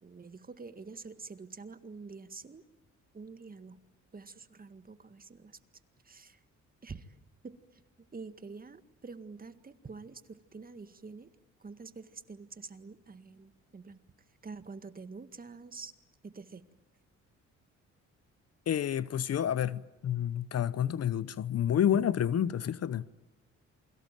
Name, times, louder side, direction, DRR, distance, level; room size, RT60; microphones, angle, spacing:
voice 1, 0.0-2.6 3.1-3.8 4.1-5.5 6.1-6.4 6.8-7.0 7.4-7.6 8.1-11.3 11.6-14.0 14.4-15.9 16.2-16.6, right 4 dB, 30° right, 1.9 m, -47 dB
voice 2, 18.7-23.1, left 10 dB, 55° left, 0.9 m, -29 dB
28.5 x 23.0 x 9.2 m
cardioid pair, 90°, 30 cm